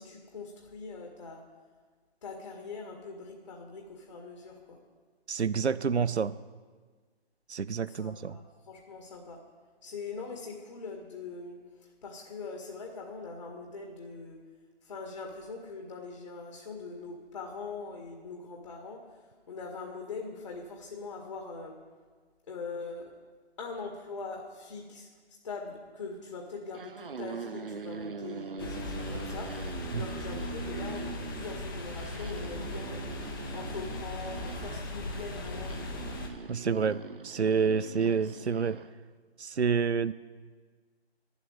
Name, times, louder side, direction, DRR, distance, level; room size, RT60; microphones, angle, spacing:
voice 1, 0.0-1.4 2.2-4.8 7.9-9.4 9.8-14.4 14.8-19.0 19.5-21.8 22.5-23.1 23.6-25.1 25.4-33.1 33.5-36.1, left 4 dB, 40° left, 1 dB, 2.0 m, -42 dB
voice 2, 5.3-6.3 7.5-8.4 29.9-30.0 36.5-38.8 39.4-40.1, right 6 dB, 80° right, 16 dB, 0.6 m, -28 dB
sound 1, 26.6-38.9, right 5 dB, 55° right, 0.8 m, -42 dB
sound 2, 28.6-36.3, left 2 dB, 20° left, 1.2 m, -38 dB
12.0 x 8.2 x 9.0 m, 1.5 s
figure-of-eight pair, 145°, 33 cm